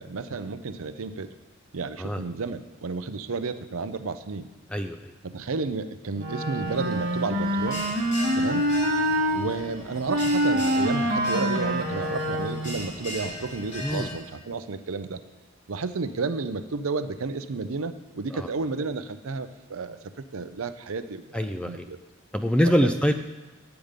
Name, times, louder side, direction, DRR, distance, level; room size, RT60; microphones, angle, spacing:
voice 1, 0.0-1.3 1.7-4.5 5.2-7.9 8.4-8.7 9.3-15.2 15.7-22.0 22.6-22.7, right 4 dB, 70° right, 11 dB, 0.6 m, -32 dB
voice 2, 4.7-5.1 13.8-14.1 18.3-18.5 21.3-21.9 22.3-23.1, equal, 5° left, 7 dB, 0.4 m, -24 dB
Wind instrument woodwind instrument, 6.2-9.4 10.1-12.8, equal, 50° right, 1.1 m, -25 dB
Bell, 6.7-14.2, left 2 dB, 35° left, 1.6 m, -38 dB
8.9 x 7.9 x 5.1 m, 1.2 s
head